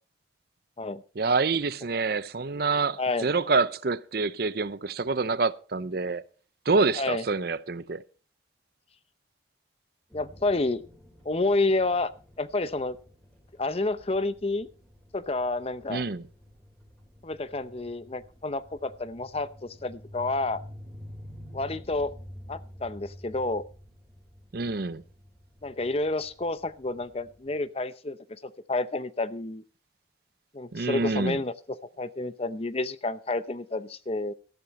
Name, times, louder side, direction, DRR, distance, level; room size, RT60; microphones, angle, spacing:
voice 1, 1.2-6.2 6.7-8.0 15.9-16.2 24.5-25.0 30.7-31.4, right 4 dB, 55° right, 0.6 m, -27 dB
voice 2, 3.0-3.5 7.0-7.2 10.1-10.8 11.2-12.1 12.4-13.0 13.6-14.7 15.1-16.0 17.2-20.6 21.5-22.1 22.5-23.6 25.6-29.6 30.5-34.3, left 2 dB, 30° left, 0.7 m, -29 dB
sound 1, 10.1-27.6, equal, 10° left, 4.3 m, -49 dB
13.5 x 12.0 x 4.2 m
head